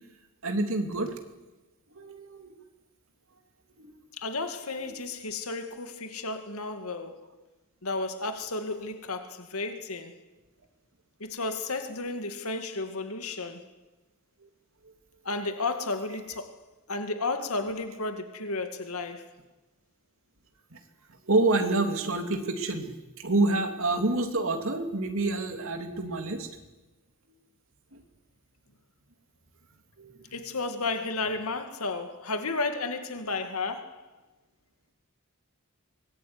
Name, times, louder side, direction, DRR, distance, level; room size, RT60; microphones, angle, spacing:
voice 1, 0.4-1.2 1.9-2.5 3.8-3.9 14.4-14.5 20.7-20.8 21.2-26.5 27.9-28.0 30.0-30.2, right 2 dB, 65° right, 3.2 m, -28 dB
voice 2, 4.1-7.2 7.8-10.2 11.2-13.6 15.2-16.6 16.9-19.3 30.3-34.0, left 3 dB, 85° left, 2.2 m, -33 dB
23.5 x 20.5 x 9.6 m
head